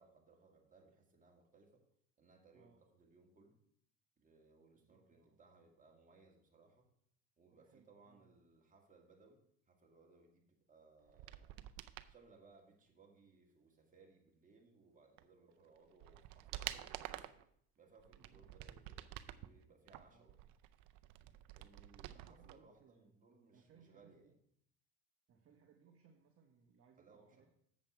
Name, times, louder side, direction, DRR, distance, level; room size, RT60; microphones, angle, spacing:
voice 1, 0.0-1.9 2.2-3.6 4.2-6.9 7.4-11.7 12.1-17.4 17.8-20.4 21.5-24.3 27.0-27.5, right 3 dB, 20° right, 0 dB, 2.0 m, -66 dB
voice 2, 4.7-5.4 7.5-8.2 18.2-18.5 20.1-20.3 22.1-23.1 23.5-24.3 25.3-27.5, right 6 dB, 40° right, 3 dB, 1.0 m, -68 dB
sound 1, 11.1-12.1 15.2-15.3 15.8-17.4 18.0-19.5 19.9-22.6 22.8-22.9, right 14 dB, 65° right, 0.6 m, -49 dB
7.5 x 7.4 x 4.5 m, 0.68 s
cardioid pair, 115°, 37 cm